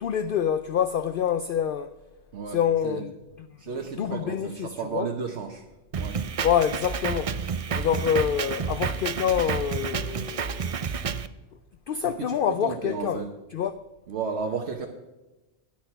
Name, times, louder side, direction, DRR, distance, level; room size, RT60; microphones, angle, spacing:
voice 1, 0.0-1.9 2.5-3.1 3.4-3.5 3.8-5.1 6.4-7.4 7.7-10.8 11.9-13.3 13.5-13.8, left 8 dB, 60° left, 0.6 m, -26 dB
voice 2, 3.6-5.6 6.0-6.2 12.0-13.3 14.1-14.9, right 5 dB, 65° right, 1.2 m, -33 dB
Drum kit, 5.9-11.3, right 6 dB, 50° right, 0.4 m, -30 dB
10.5 x 10.0 x 5.7 m
omnidirectional pair, 1.2 m